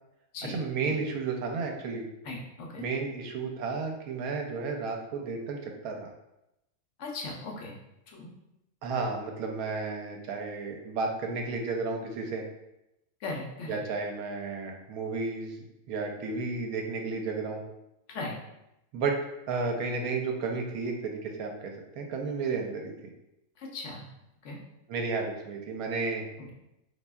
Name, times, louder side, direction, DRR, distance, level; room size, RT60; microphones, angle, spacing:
voice 1, 0.4-2.1 2.8-6.1 8.8-12.4 13.7-15.6 15.9-17.6 18.9-19.2 19.5-23.1 24.9-26.3, right 4 dB, 80° right, 2 dB, 1.0 m, -32 dB
voice 2, 2.2-2.8 7.0-7.7 8.1-8.3 13.2-13.8 18.1-18.3 23.6-24.0 24.4-24.6 26.4-26.5, left 3 dB, 60° left, -1 dB, 0.9 m, -38 dB
4.3 x 2.6 x 2.2 m, 0.89 s
omnidirectional pair, 1.6 m